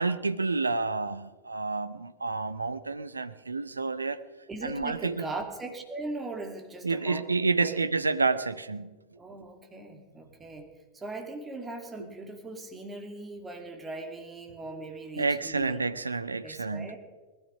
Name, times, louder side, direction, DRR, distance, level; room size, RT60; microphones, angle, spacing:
voice 1, 0.0-4.2 4.6-5.2 6.8-8.9 15.2-16.9, right 3 dB, 80° right, 0.8 m, -29 dB
voice 2, 4.5-7.2 7.6-7.8 9.2-10.7 10.9-15.9 16.4-17.0, right 2 dB, 15° right, 2.6 m, -39 dB
19.5 x 13.5 x 5.2 m
figure-of-eight pair, 90°, 0 cm